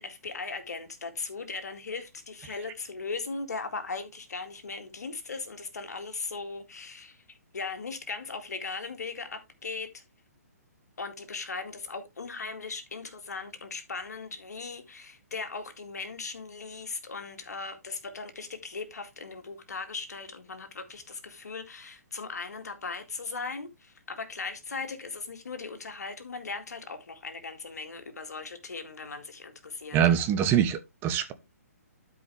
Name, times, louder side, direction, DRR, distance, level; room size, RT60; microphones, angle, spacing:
voice 1, 0.0-10.0 11.0-30.0, left 4 dB, 80° left, 2.1 m, -38 dB
voice 2, 29.9-31.3, right 9 dB, 25° right, 1.0 m, -24 dB
12.5 x 5.0 x 3.3 m
hypercardioid pair, 135°, 9 cm